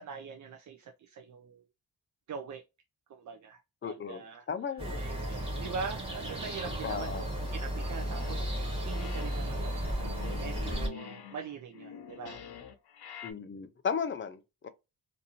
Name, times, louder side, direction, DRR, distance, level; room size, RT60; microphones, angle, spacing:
voice 1, 0.0-1.6 2.3-2.6 3.1-4.5 5.0-12.4, right 5 dB, 50° right, 0.4 m, -43 dB
voice 2, 3.8-5.0 6.8-7.2 13.2-14.7, left 6 dB, 30° left, 0.4 m, -35 dB
sound 1, 4.8-10.9, right 1 dB, 15° right, 1.2 m, -34 dB
sound 2, 7.5-8.7 8.9-13.3, left 9 dB, 75° left, 0.6 m, -47 dB
2.6 x 2.5 x 2.8 m
wide cardioid pair, 135°, 39 cm